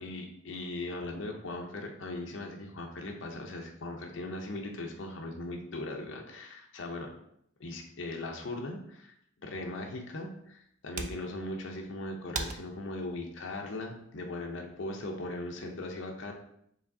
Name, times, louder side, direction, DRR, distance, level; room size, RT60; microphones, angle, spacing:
voice 1, 0.0-7.1 7.6-16.3, left 2 dB, 65° left, 2 dB, 0.6 m, -39 dB
sound 1, 10.1-14.9, right 4 dB, 40° right, 0.3 m, -44 dB
4.7 x 3.1 x 2.6 m, 0.71 s
head